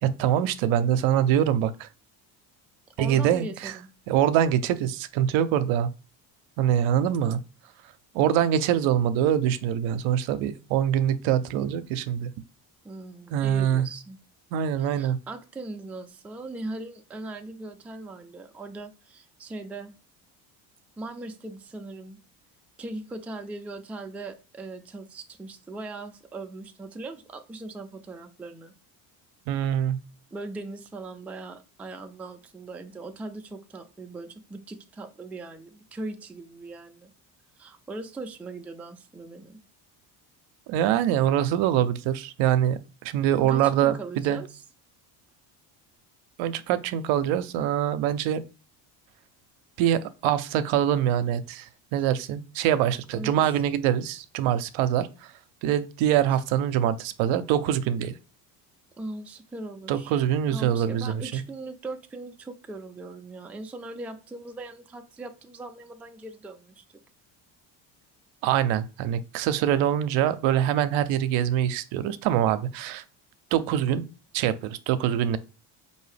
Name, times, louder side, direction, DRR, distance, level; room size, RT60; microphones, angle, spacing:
voice 1, 0.0-1.9 3.0-3.7 4.1-5.9 6.6-7.4 8.1-12.3 13.3-13.9 14.5-15.2 29.5-30.0 40.7-44.4 46.4-48.4 49.8-55.3 55.6-58.1 59.9-61.4 68.4-73.0 73.5-74.1 74.3-75.4, right 10 dB, 75° right, 0.6 m, -24 dB
voice 2, 3.0-3.9 12.8-14.2 14.8-19.9 21.0-22.2 22.8-28.7 30.3-37.1 37.6-39.6 43.4-44.6 52.0-52.1 53.1-53.3 59.0-60.2 60.5-66.8, right 2 dB, 5° right, 0.3 m, -39 dB
4.6 x 2.7 x 3.3 m
supercardioid pair, 90°, 48 cm